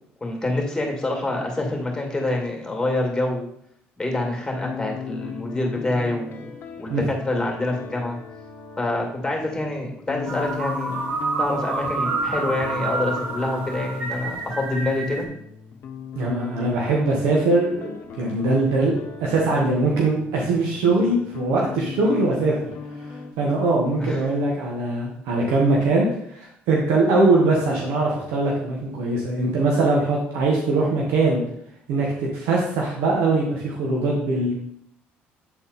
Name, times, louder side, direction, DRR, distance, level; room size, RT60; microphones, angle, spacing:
voice 1, 0.2-3.5 4.0-8.2 8.8-11.0 11.4-15.3 24.0-24.3, left 2 dB, 10° left, 1 dB, 2.3 m, -26 dB
sound 1, 4.4-23.3, left 6 dB, 50° left, 0.9 m, -38 dB
sound 2, 10.3-15.3, right 3 dB, 45° right, 2.0 m, -28 dB
voice 2, 16.1-22.5 23.1-31.4 31.9-34.5, right 2 dB, 90° right, -2 dB, 1.3 m, -22 dB
8.1 x 4.1 x 4.2 m, 0.71 s
cardioid pair, 100°, 4 cm